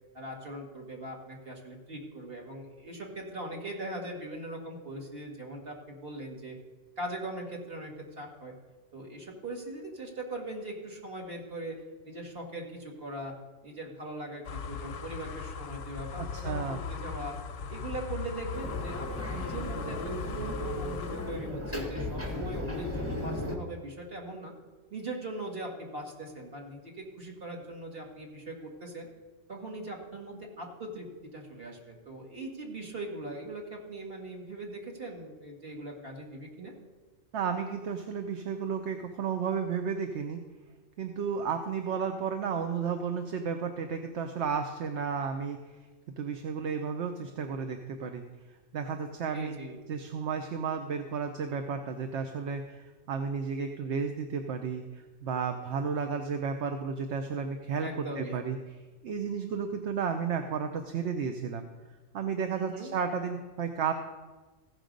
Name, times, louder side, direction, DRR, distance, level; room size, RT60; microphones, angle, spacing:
voice 1, 0.1-6.6 7.0-7.9 8.2-8.5 8.9-11.7 12.0-13.3 13.6-17.3 17.7-24.5 24.9-29.1 29.5-36.7 49.3-49.8 57.8-58.4 62.5-62.9, right 1 dB, 50° right, -1 dB, 2.0 m, -40 dB
sound 1, 14.4-21.5, left 5 dB, 60° left, 0.7 m, -38 dB
voice 2, 16.2-16.8 37.3-40.4 41.0-45.6 46.2-48.2 48.7-49.6 49.9-58.6 59.0-61.6 62.1-63.9, right 6 dB, 65° right, 6 dB, 1.0 m, -33 dB
sound 2, 18.5-23.6, left 1 dB, 10° right, 1.3 m, -35 dB
15.5 x 6.2 x 5.2 m, 1.3 s
omnidirectional pair, 1.3 m